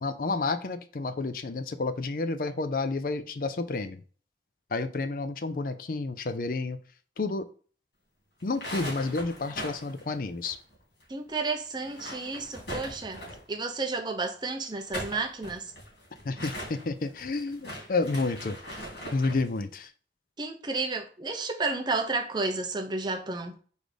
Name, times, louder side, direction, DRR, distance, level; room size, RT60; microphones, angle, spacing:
voice 1, 0.0-4.0 4.7-6.8 7.2-7.5 8.4-10.6 16.2-18.6 19.1-19.9, left 3 dB, 50° left, 0.5 m, -30 dB
sound 1, 8.4-11.0 11.3-11.4 11.8-13.5 14.6-19.5, equal, 80° left, 3.2 m, -40 dB
voice 2, 11.1-13.2 13.5-15.7 20.4-23.6, right 3 dB, 25° right, 0.8 m, -31 dB
4.8 x 4.0 x 5.0 m
head